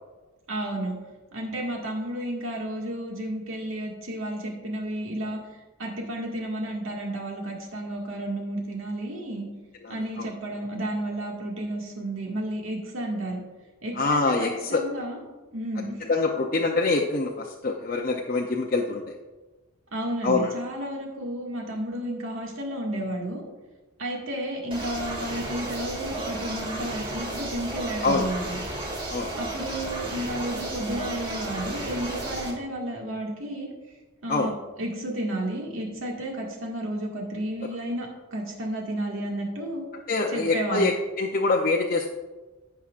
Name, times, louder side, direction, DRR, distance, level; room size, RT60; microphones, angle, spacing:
voice 1, 0.5-1.0 1.3-5.4 5.8-9.5 9.9-13.4 13.8-15.2 15.5-16.0 19.9-23.4 24.0-28.6 29.4-33.7 34.2-34.5 34.8-39.8 40.3-40.9, right 1 dB, 75° right, -1 dB, 1.9 m, -32 dB
voice 2, 9.8-10.3 14.0-14.8 16.1-19.1 20.2-20.5 28.0-28.3 29.1-29.3 34.3-34.5 40.1-42.1, left 3 dB, 45° left, 0 dB, 0.6 m, -25 dB
sound 1, 24.7-32.5, right 2 dB, 25° right, 1.8 m, -33 dB
15.5 x 5.8 x 2.5 m, 1.2 s
head